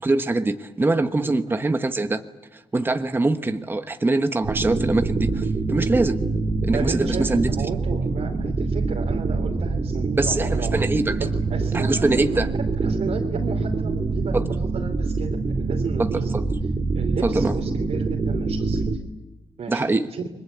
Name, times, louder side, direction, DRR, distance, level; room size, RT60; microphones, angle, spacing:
voice 1, 0.0-2.2 2.5-6.2 6.6-7.5 10.2-11.2 11.7-12.5 14.3-14.4 16.0-16.4 17.2-17.6 19.7-20.1, right 2 dB, 20° right, 8 dB, 1.2 m, -23 dB
sound 1, 4.4-19.0, right 3 dB, 40° right, 2.5 m, -25 dB
voice 2, 6.7-10.7 11.2-12.4 12.8-16.3 16.9-18.9 19.6-19.9 20.1-20.2, right 5 dB, 65° right, 0 dB, 2.9 m, -33 dB
29.5 x 23.0 x 8.1 m, 1.1 s
wide cardioid pair, 125°, 12 cm